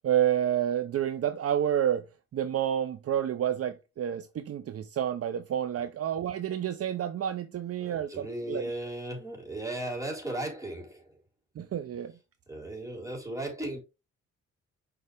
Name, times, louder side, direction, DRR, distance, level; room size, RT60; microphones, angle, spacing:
voice 1, 0.0-2.0 2.3-8.7 11.6-12.1, right 10 dB, 50° right, 0.7 m, -29 dB
voice 2, 7.8-11.2 12.5-13.8, right 1 dB, 10° right, 4.0 m, -36 dB
6.8 x 4.9 x 3.4 m
cardioid pair, 90°, 30 cm